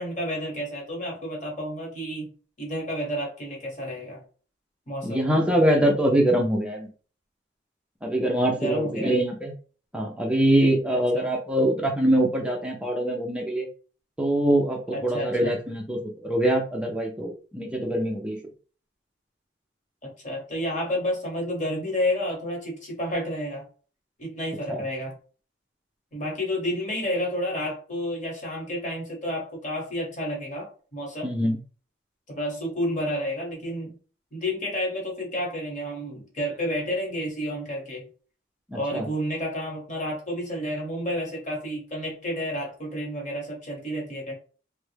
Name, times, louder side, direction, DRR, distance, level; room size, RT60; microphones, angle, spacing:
voice 1, 0.0-2.3 2.6-4.2 4.9-5.3 8.5-9.1 10.9-11.3 14.9-15.5 20.0-23.6 24.2-25.1 26.1-31.3 32.3-34.0 34.3-38.0 38.7-44.3, equal, 40° left, -1 dB, 1.2 m, -30 dB
voice 2, 5.0-6.9 8.0-9.5 9.9-13.7 14.2-18.4 24.7-24.8 31.2-31.6 38.7-39.1, right 1 dB, 5° right, 0 dB, 0.5 m, -24 dB
3.2 x 2.0 x 3.2 m, 0.39 s
head